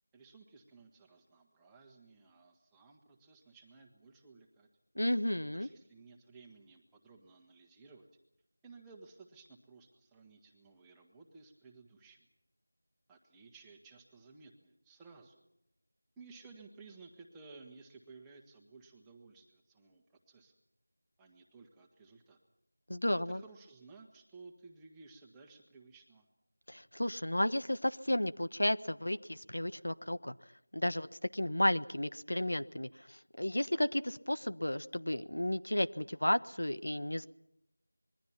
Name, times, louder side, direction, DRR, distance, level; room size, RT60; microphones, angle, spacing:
voice 1, 0.1-4.7 5.5-8.1 8.6-12.3 13.1-15.4 16.2-20.5 21.2-22.4 23.2-26.3, right 4 dB, 5° right, 0 dB, 1.6 m, -57 dB
voice 2, 5.0-5.7 22.9-23.4 26.7-30.3 30.7-37.3, left 1 dB, 85° left, 13 dB, 1.1 m, -33 dB
26.0 x 22.0 x 5.9 m, 0.82 s
figure-of-eight pair, 175°, 0 cm